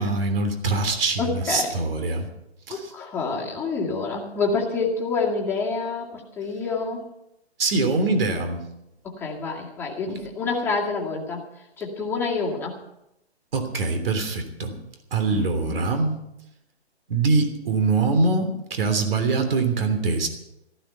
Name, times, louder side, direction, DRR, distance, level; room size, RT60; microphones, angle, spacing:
voice 1, 0.0-2.3 2.7-2.9 7.6-8.6 13.5-14.7 15.1-16.2 17.1-20.3, right 3 dB, 55° right, 7 dB, 3.2 m, -23 dB
voice 2, 1.2-1.7 2.7-7.0 9.0-11.4 11.8-12.8 15.3-15.8, left 4 dB, 5° left, -4 dB, 2.3 m, -27 dB
14.5 x 14.0 x 5.6 m, 0.86 s
hypercardioid pair, 150°, 34 cm